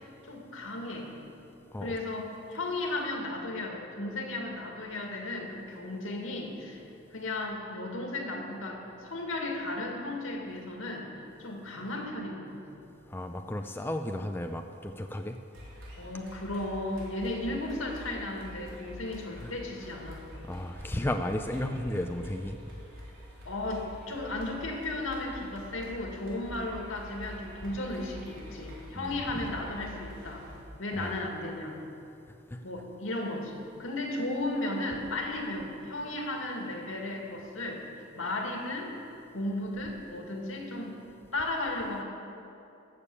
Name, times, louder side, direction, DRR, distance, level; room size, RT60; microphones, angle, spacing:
voice 1, 0.2-1.1 1.8-6.8 7.1-11.1 11.4-12.6 16.0-20.2 23.5-30.5 30.8-31.8 32.6-37.8 38.1-38.9 39.3-41.0 41.3-42.0, left 2 dB, 80° left, 1 dB, 2.0 m, -35 dB
voice 2, 13.1-15.4 19.4-19.5 20.5-22.6 29.0-29.2 31.0-31.2 32.5-32.6, left 1 dB, 10° left, 5 dB, 0.4 m, -34 dB
sound 1, 15.5-30.6, equal, 75° right, 3.7 m, -46 dB
14.0 x 6.8 x 8.5 m, 2.8 s
head